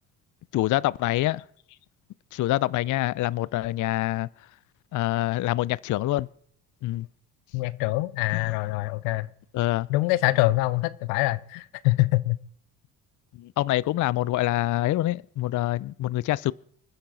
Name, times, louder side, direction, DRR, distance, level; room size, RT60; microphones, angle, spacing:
voice 1, 0.5-1.4 2.3-4.3 4.9-6.3 6.8-7.1 8.3-8.6 9.5-9.9 13.3-16.5, left 16 dB, 45° left, 0.5 m, -26 dB
voice 2, 7.5-9.3 9.9-12.4, left 19 dB, 80° left, 0.7 m, -24 dB
27.0 x 9.8 x 3.9 m
hypercardioid pair, 60°, 44 cm